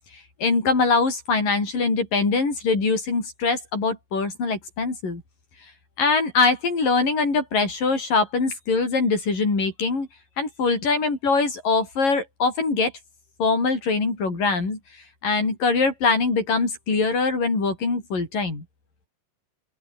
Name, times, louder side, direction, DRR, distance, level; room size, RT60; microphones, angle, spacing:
voice 1, 0.4-5.2 6.0-10.1 10.4-12.9 13.4-14.8 15.2-18.6, left 4 dB, 60° left, 9.4 m, -23 dB
open air
omnidirectional pair, 4.3 m